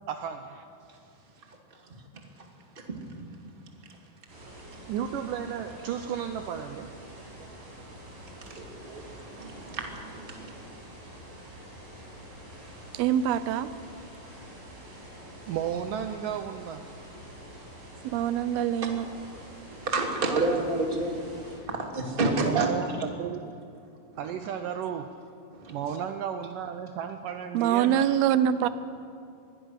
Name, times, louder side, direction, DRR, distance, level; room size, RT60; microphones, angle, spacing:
voice 1, 0.1-0.6 4.9-7.0 15.2-16.8 22.2-23.6 24.2-25.1 25.7-28.1, right 8 dB, 75° right, 7 dB, 2.2 m, -34 dB
sound 1, 4.3-21.6, right 1 dB, 55° right, 7.1 m, -46 dB
voice 2, 9.4-9.9 10.4-10.5 19.8-21.2 21.7-22.7 25.6-25.7, right 3 dB, 15° right, 2 dB, 2.2 m, -28 dB
voice 3, 12.9-13.7 18.0-19.1 27.5-28.7, right 10 dB, 90° right, 14 dB, 2.7 m, -24 dB
24.5 x 20.5 x 6.5 m, 2.6 s
omnidirectional pair, 4.3 m